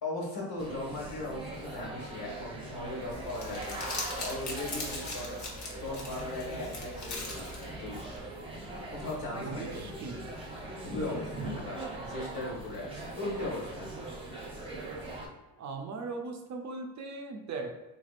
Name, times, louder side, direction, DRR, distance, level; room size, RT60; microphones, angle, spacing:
voice 1, 0.0-3.8 4.2-5.4 5.8-8.1 8.9-9.9 10.8-11.8 12.1-13.9, left 2 dB, 65° left, -3 dB, 1.5 m, -38 dB
sound 1, 0.6-15.3, right 2 dB, 15° right, 0.7 m, -41 dB
Crumpling crinkling, 3.1-8.2, left 2 dB, 50° left, 1.0 m, -40 dB
voice 2, 9.4-10.3 11.9-12.1 15.6-17.7, right 3 dB, 45° right, 3 dB, 0.5 m, -39 dB
3.5 x 3.3 x 2.5 m, 1.1 s
cardioid pair, 120°, 38 cm